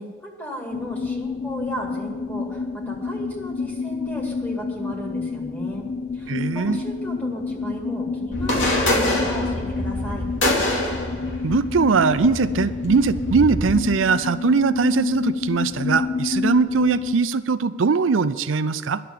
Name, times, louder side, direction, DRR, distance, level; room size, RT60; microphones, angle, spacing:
voice 1, 0.0-5.8 6.1-10.3, equal, 10° left, -1 dB, 2.2 m, -35 dB
sound 1, 0.7-17.1, left 4 dB, 90° left, 0.6 m, -29 dB
voice 2, 6.3-6.8 11.4-19.0, right 5 dB, 90° right, 13 dB, 0.5 m, -21 dB
sound 2, 8.3-13.6, left 1 dB, 70° left, 2.8 m, -26 dB
11.0 x 6.8 x 9.3 m, 1.5 s
head